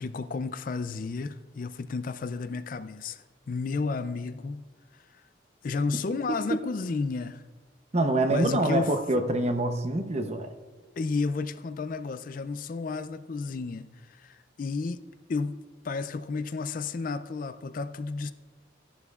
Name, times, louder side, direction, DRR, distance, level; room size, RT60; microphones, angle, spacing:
voice 1, 0.0-4.7 4.9-5.0 5.6-7.4 8.3-8.9 11.0-15.0 15.3-18.3, left 4 dB, 45° left, 0.4 m, -32 dB
voice 2, 7.9-10.5, right 2 dB, 35° right, 0.7 m, -25 dB
14.5 x 11.0 x 2.4 m
head